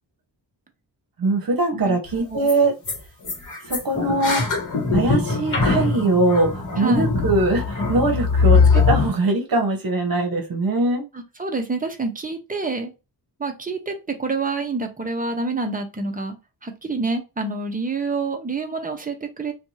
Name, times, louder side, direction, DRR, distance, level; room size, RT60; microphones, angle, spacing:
voice 1, 1.2-2.7 3.7-4.5 4.9-11.0, right 2 dB, 50° right, 2 dB, 0.9 m, -21 dB
sound 1, 2.1-2.2 2.5-2.6 2.9-3.0 3.2-9.1, left 4 dB, 40° left, 1.1 m, -21 dB
voice 2, 6.8-7.1 11.1-12.9 13.4-16.4 16.6-19.5, right 3 dB, 20° right, 5 dB, 0.6 m, -27 dB
2.6 x 2.3 x 3.0 m, 0.26 s
wide cardioid pair, 120°, 45 cm